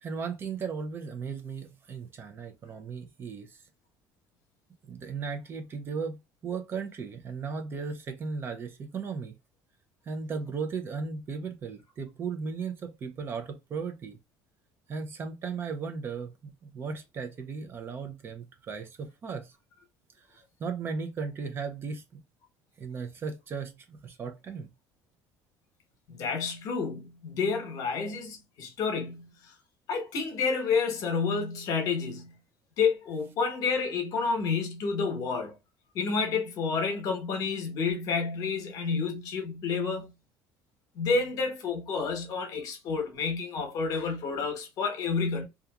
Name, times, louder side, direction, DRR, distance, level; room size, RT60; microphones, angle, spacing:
voice 1, 0.0-3.6 4.9-9.3 10.1-14.2 14.9-19.6 20.2-22.0 22.8-24.7, right 5 dB, 30° right, 0.5 m, -36 dB
voice 2, 26.1-29.5 29.9-32.3 32.8-35.6 35.9-40.1 40.9-45.5, left 5 dB, 55° left, 1.0 m, -30 dB
2.9 x 2.4 x 2.3 m
cardioid pair, 145°, 7 cm